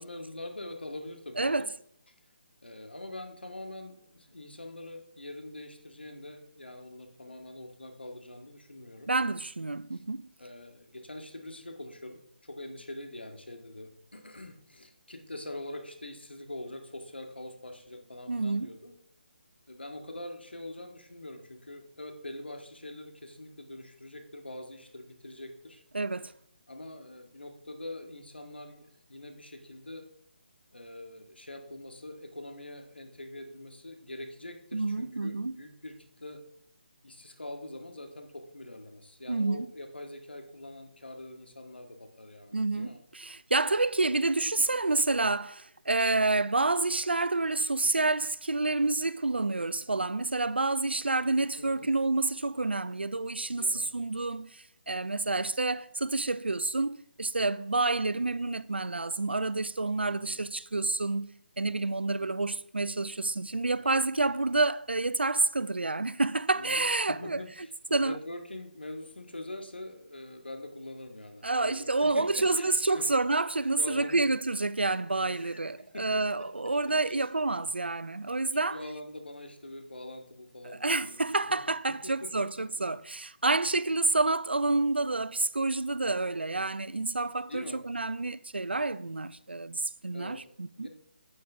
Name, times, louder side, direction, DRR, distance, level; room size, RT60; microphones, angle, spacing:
voice 1, 0.0-1.7 2.6-9.1 9.9-10.0 10.4-18.9 19.7-25.8 26.7-30.1 30.7-36.4 37.0-43.0 51.6-51.9 53.6-53.9 60.1-60.4 63.8-64.0 66.5-73.0 73.7-74.2 75.2-77.3 78.5-81.2 81.4-81.6 82.0-82.7 87.5-87.8 90.1-90.4 90.8-90.9, left 1 dB, 85° left, 1.9 m, -44 dB
voice 2, 1.4-1.7 9.1-10.2 18.3-18.7 25.9-26.3 34.7-35.6 39.3-39.7 42.5-61.3 61.6-67.4 67.9-68.2 71.4-78.8 80.8-90.9, right 3 dB, 85° right, 0.4 m, -28 dB
9.7 x 8.5 x 3.6 m
figure-of-eight pair, 150°, 6 cm